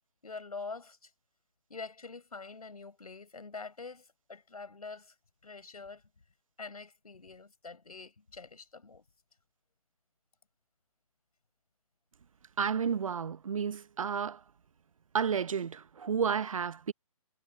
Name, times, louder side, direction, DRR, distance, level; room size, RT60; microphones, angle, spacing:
voice 1, 0.2-1.1 1.7-5.1 5.4-6.0 6.6-9.0, left 4 dB, 80° left, 4.8 m, -45 dB
voice 2, 12.6-14.4 15.1-16.9, right 7 dB, 60° right, 0.9 m, -31 dB
figure-of-eight pair, 140°, 19 cm